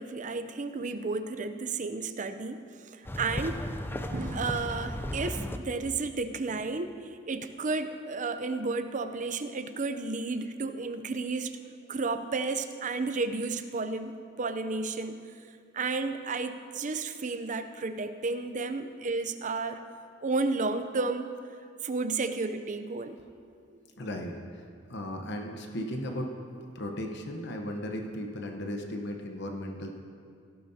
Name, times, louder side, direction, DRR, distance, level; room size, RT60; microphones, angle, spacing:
voice 1, 0.0-3.6 4.1-11.6 11.9-15.2 15.7-19.8 20.2-21.3 21.8-23.2, right 3 dB, 40° right, 9 dB, 0.6 m, -32 dB
sound 1, 3.1-5.6, left 1 dB, 10° left, 0.5 m, -35 dB
voice 2, 24.0-24.6 24.9-26.3 26.7-30.0, left 1 dB, 60° left, 3 dB, 1.0 m, -36 dB
17.0 x 12.5 x 2.8 m, 2.3 s
head